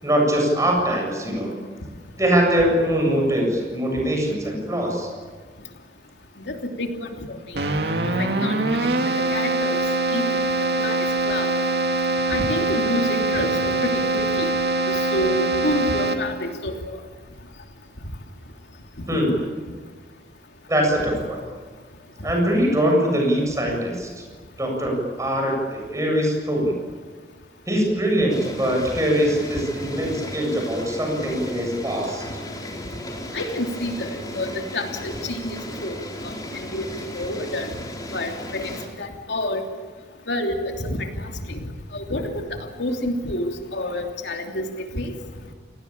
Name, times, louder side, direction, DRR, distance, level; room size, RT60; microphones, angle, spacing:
voice 1, 0.0-1.6 2.2-5.1 19.1-19.3 20.7-21.4 22.2-24.1 24.6-26.7 27.7-32.2, equal, 20° right, 0 dB, 7.7 m, -22 dB
voice 2, 6.4-7.4 8.2-8.9 9.3-9.8 10.1-10.3 10.8-11.6 12.3-14.5 14.9-17.0 33.3-36.0 36.6-36.9 37.1-37.7 38.1-38.7 39.0-39.6 40.3-41.1 41.5-41.6 41.9-42.4 42.8-44.7 44.9-45.1, left 1 dB, 85° left, 3 dB, 3.1 m, -28 dB
Keyboard (musical), 7.5-16.5, right 2 dB, 70° right, 2.3 m, -23 dB
sound 1, 28.3-38.9, left 1 dB, 20° left, 3.8 m, -35 dB
29.0 x 19.5 x 8.8 m, 1.5 s
head